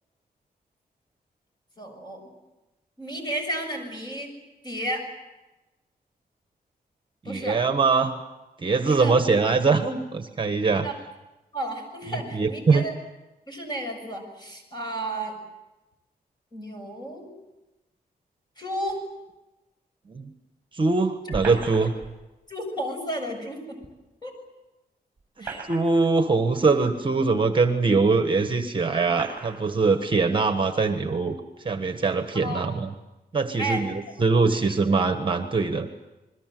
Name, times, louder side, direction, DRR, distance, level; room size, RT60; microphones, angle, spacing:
voice 1, 1.8-2.3 3.0-4.3 4.6-5.0 7.2-7.6 8.8-9.2 10.8-10.9 11.5-12.9 13.5-15.3 16.5-17.3 18.6-19.0 21.3-21.4 22.5-23.6 24.2-24.3 25.4-25.6 32.4-32.6 33.6-33.9, right 1 dB, 25° left, 3 dB, 7.1 m, -32 dB
voice 2, 7.2-8.1 8.6-10.9 12.1-12.8 20.1-20.3 20.7-21.9 25.7-31.3 31.6-32.9 33.3-35.9, right 4 dB, 30° right, 7 dB, 1.5 m, -22 dB
sound 1, 21.3-22.1 23.8-23.9 25.2-26.1 27.0-27.1 28.0-28.1 29.1-29.6, right 4 dB, 15° right, 7.5 m, -36 dB
28.5 x 22.0 x 7.8 m, 1.0 s
wide cardioid pair, 165°, 16 cm